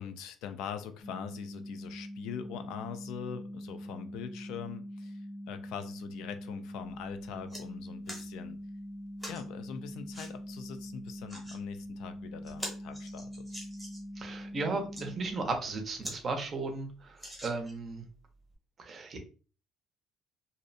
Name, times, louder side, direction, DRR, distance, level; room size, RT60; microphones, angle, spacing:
voice 1, 0.0-8.6 9.3-13.5, left 8 dB, 85° left, 9 dB, 0.3 m, -42 dB
sound 1, 1.0-15.5, equal, 45° left, 0.6 m, -43 dB
sound 2, 6.8-6.9 7.2-7.6 8.1-8.3 9.2-9.4 10.1-10.3 11.1-11.6 12.0-12.1 12.4-14.1 14.7-15.1 15.6-15.7 16.0-16.2 16.5-16.6 17.2-17.9 18.5-18.6, equal, ahead, 0.8 m, -43 dB
voice 2, 14.2-18.0 18.8-19.2, right 3 dB, 30° right, 4 dB, 0.5 m, -35 dB
2.6 x 2.0 x 2.6 m, 0.37 s
cardioid pair, 155°, 0 cm